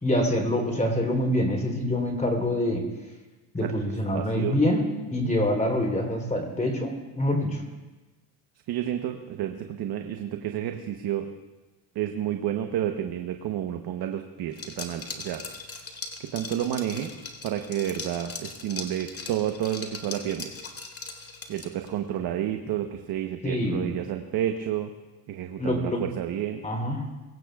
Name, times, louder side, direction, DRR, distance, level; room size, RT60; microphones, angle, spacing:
voice 1, 0.0-2.8 3.5-4.8 5.1-7.6 23.4-24.0 25.6-26.0 26.6-27.0, left 1 dB, 15° left, 3 dB, 3.5 m, -25 dB
voice 2, 4.1-4.6 5.2-5.3 8.7-11.3 11.9-15.4 16.2-17.1 17.4-20.5 21.5-24.9 25.3-26.6, right 11 dB, 60° right, 5 dB, 1.0 m, -30 dB
Liquid, 14.5-21.9, left 4 dB, 35° left, 2.2 m, -39 dB
22.5 x 17.0 x 2.4 m, 1.2 s
cardioid pair, 100°, 42 cm